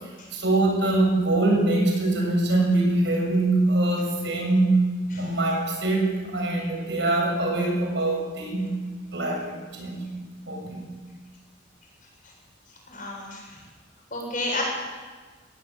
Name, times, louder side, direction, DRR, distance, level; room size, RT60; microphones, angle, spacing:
voice 1, 0.3-4.8 5.2-8.7 9.1-10.0 10.5-10.8, right 2 dB, 65° right, 0 dB, 7.8 m, -23 dB
voice 2, 12.9-13.6 14.1-14.6, left 2 dB, 45° left, -1 dB, 7.9 m, -31 dB
22.0 x 17.5 x 8.4 m, 1.4 s
head